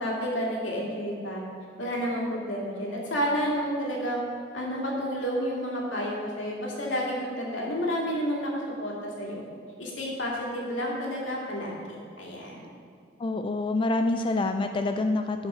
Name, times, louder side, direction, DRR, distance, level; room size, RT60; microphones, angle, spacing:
voice 1, 0.0-1.4 1.8-4.2 4.5-8.5 8.8-9.4 9.8-12.7, equal, 80° left, -3 dB, 2.4 m, -30 dB
voice 2, 13.2-15.5, left 2 dB, 25° left, 6 dB, 0.3 m, -26 dB
11.5 x 5.1 x 6.1 m, 2.2 s
head